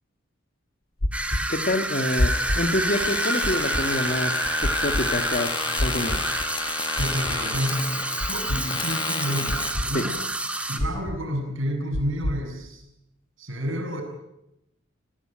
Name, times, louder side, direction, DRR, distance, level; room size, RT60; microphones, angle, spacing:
sound 1, 1.0-1.4 2.2-2.6 3.4-3.8 4.6-5.0 5.8-6.2 7.0-7.4 8.2-8.6 9.5-9.9 10.8-11.2 11.9-12.4, left 1 dB, 85° left, 2.1 m, -25 dB
sound 2, 1.1-10.8, right 1 dB, 5° right, 2.3 m, -29 dB
voice 1, 1.5-4.3 4.6-6.2 9.9-10.1, left 1 dB, 45° left, 9 dB, 1.9 m, -27 dB
sound 3, 1.9-9.7, left 5 dB, 25° left, 1.8 m, -32 dB
voice 2, 6.9-10.3 10.7-12.8 13.4-14.0, equal, 70° right, 3 dB, 7.7 m, -30 dB
27.5 x 18.5 x 9.0 m, 0.86 s
head